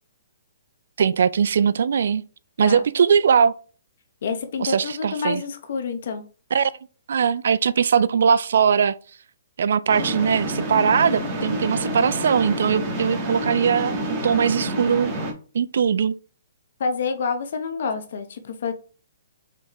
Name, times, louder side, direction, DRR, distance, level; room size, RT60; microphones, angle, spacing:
voice 1, 1.0-2.2 2.6-3.5 4.6-5.4 6.5-6.7 7.1-9.0 9.6-15.1 15.5-16.2, right 7 dB, 70° right, 0.3 m, -20 dB
voice 2, 4.2-6.2 16.8-18.7, left 5 dB, 65° left, 0.9 m, -28 dB
sound 1, 9.9-15.3, right 1 dB, 25° right, 1.3 m, -28 dB
4.5 x 3.4 x 3.0 m
hypercardioid pair, 145°, 0 cm